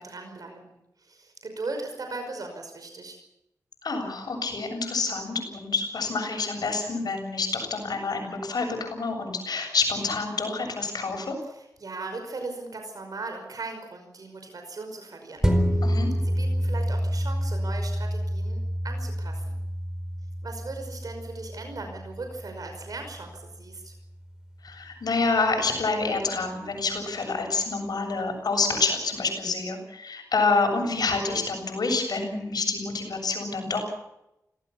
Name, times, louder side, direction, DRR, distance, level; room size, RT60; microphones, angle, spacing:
voice 1, 0.0-3.2 11.5-15.9 16.2-19.6 20.4-24.0, right 3 dB, 70° right, 5 dB, 5.4 m, -38 dB
voice 2, 3.8-11.3 15.8-16.1 24.6-33.8, left 3 dB, 85° left, 3 dB, 7.6 m, -27 dB
sound 1, 15.4-24.2 24.7-24.8, equal, 10° right, 4.6 m, -28 dB
27.5 x 18.0 x 7.1 m, 0.87 s
wide cardioid pair, 80°, 7 cm